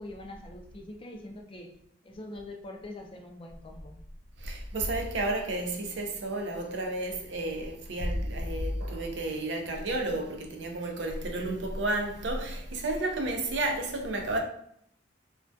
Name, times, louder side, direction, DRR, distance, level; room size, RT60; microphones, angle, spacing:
voice 1, 0.0-1.7 2.0-4.0, left 1 dB, 30° left, 0.3 m, -43 dB
voice 2, 4.4-14.4, right 2 dB, 65° right, 0.5 m, -31 dB
2.2 x 2.2 x 2.5 m
head